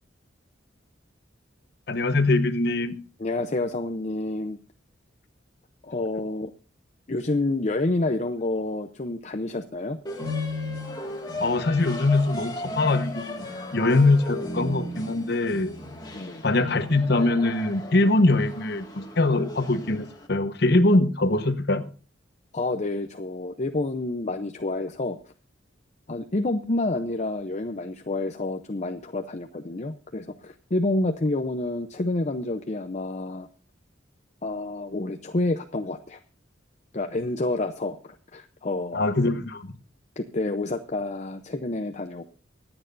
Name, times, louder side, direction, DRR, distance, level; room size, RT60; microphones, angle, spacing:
voice 1, 1.9-2.9 11.4-13.4 13.7-15.7 16.4-21.8 38.9-39.8, left 2 dB, 60° left, 10 dB, 1.1 m, -22 dB
voice 2, 3.2-4.6 5.8-6.5 7.1-10.0 16.1-16.4 22.5-25.2 26.1-33.5 34.4-36.2 36.9-39.1 40.2-42.2, left 2 dB, 40° left, 8 dB, 0.6 m, -28 dB
sound 1, 10.0-20.3, left 2 dB, 20° left, 1.9 m, -36 dB
24.5 x 8.9 x 2.6 m, 0.38 s
head